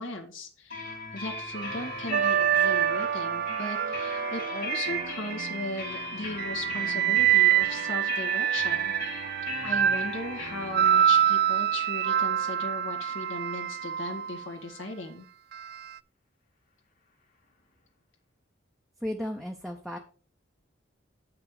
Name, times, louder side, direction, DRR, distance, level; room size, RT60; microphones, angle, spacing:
voice 1, 0.0-8.9 9.6-15.3, left 2 dB, 80° left, 2 dB, 2.0 m, -37 dB
sound 1, 0.7-14.3, left 3 dB, 45° left, 2.3 m, -39 dB
sound 2, 1.6-5.9 6.4-14.5 15.5-15.8, right 10 dB, 50° right, 0.3 m, -26 dB
voice 2, 19.0-20.0, equal, ahead, 2 dB, 0.6 m, -34 dB
8.1 x 6.0 x 4.8 m, 0.40 s
head